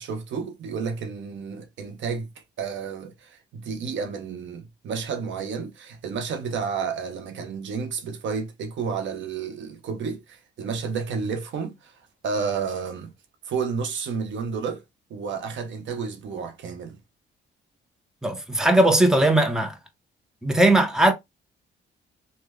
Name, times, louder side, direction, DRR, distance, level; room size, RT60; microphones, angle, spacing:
voice 1, 0.0-2.3 2.6-11.9 12.2-13.1 13.5-14.8 15.1-17.0, right 5 dB, 70° right, 0.9 m, -31 dB
voice 2, 18.2-19.7 20.4-21.1, right 1 dB, 5° right, 0.7 m, -19 dB
3.2 x 2.1 x 3.5 m
cardioid pair, 90°, 20 cm